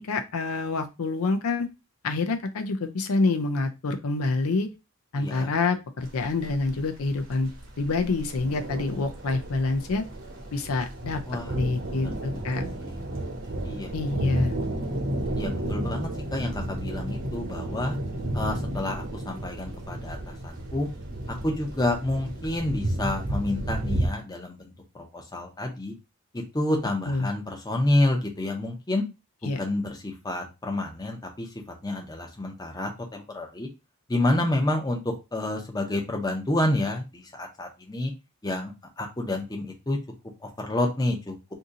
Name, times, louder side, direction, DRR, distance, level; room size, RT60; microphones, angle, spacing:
voice 1, 0.0-1.7 2.0-4.7 5.1-7.5 7.8-10.0 10.5-11.2 11.6-12.6 13.9-14.5 27.1-27.3 29.4-29.6, left 3 dB, 70° left, 6 dB, 0.5 m, -27 dB
voice 2, 5.1-5.5 11.3-13.0 13.6-13.9 15.4-18.0 18.3-20.9 21.4-25.9 26.3-29.0 29.6-31.5 31.8-33.7 34.1-38.1 38.4-40.0 40.4-41.3, left 1 dB, 15° left, 1 dB, 0.6 m, -29 dB
sound 1, 6.0-24.1, right 1 dB, 60° right, 1.1 m, -32 dB
2.7 x 2.7 x 3.6 m, 0.26 s
head